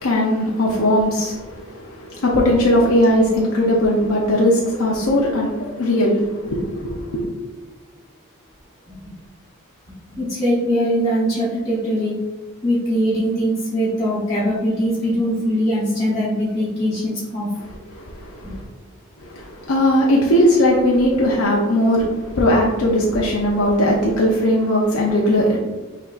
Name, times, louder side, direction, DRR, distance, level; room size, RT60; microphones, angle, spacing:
voice 1, 0.0-7.3 17.9-18.6 19.2-25.6, left 1 dB, 85° left, -3 dB, 0.7 m, -19 dB
voice 2, 10.1-12.1 12.6-17.5 18.4-18.5, equal, 20° left, -12 dB, 0.9 m, -21 dB
5.7 x 2.7 x 2.5 m, 1.2 s
head